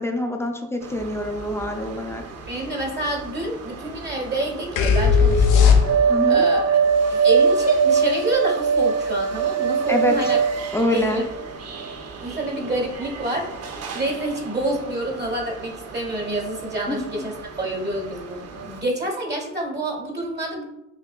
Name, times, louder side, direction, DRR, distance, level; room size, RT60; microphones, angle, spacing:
voice 1, 0.0-2.2 6.1-6.5 9.9-10.2 10.7-11.3 16.9-17.0, left 1 dB, 10° left, 3 dB, 0.5 m, -25 dB
sound 1, 0.8-18.8, right 6 dB, 55° right, 0.7 m, -25 dB
voice 2, 2.5-5.8 6.3-6.8 7.1-10.4 10.9-11.2 12.2-13.5 13.9-20.6, right 1 dB, 35° right, 1 dB, 1.3 m, -28 dB
sound 2, 4.8-6.3, left 6 dB, 90° left, 0.7 m, -16 dB
5.8 x 2.8 x 2.4 m, 0.89 s
cardioid pair, 90°, 30 cm